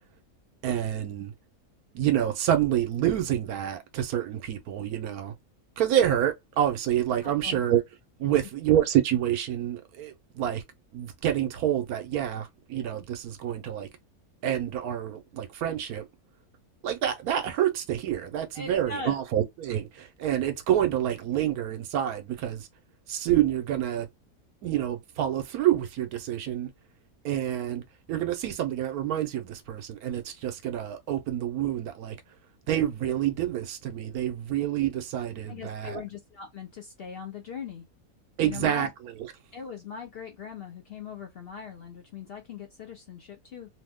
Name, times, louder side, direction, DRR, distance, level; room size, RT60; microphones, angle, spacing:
voice 1, 0.6-1.3 1.9-5.3 5.8-7.8 8.2-10.6 10.9-13.9 14.4-16.0 16.8-22.7 23.1-24.1 24.6-26.7 27.2-32.2 32.7-36.0 38.4-38.9, right 11 dB, 80° right, 1.1 m, -27 dB
voice 2, 7.2-7.6 8.2-8.3 18.5-19.2 35.5-37.8 38.4-38.9 39.5-43.8, left 6 dB, 55° left, 0.7 m, -40 dB
3.0 x 2.1 x 3.4 m
omnidirectional pair, 1.6 m